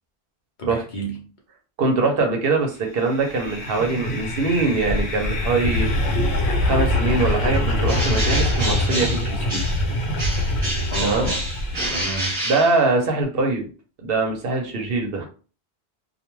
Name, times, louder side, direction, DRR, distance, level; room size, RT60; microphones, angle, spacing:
voice 1, 0.6-1.3 10.9-11.5 11.9-12.3, right 3 dB, 50° left, -1 dB, 0.8 m, -29 dB
voice 2, 1.8-5.9 6.6-9.6 11.0-11.3 12.4-13.7 14.0-15.3, right 3 dB, 65° right, 3 dB, 0.8 m, -22 dB
sound 1, 3.1-12.2, left 1 dB, 85° left, 0.9 m, -24 dB
Bird, 7.8-9.9 10.2-13.2, right 1 dB, 30° right, 0.9 m, -28 dB
2.4 x 2.2 x 3.0 m, 0.36 s
omnidirectional pair, 1.1 m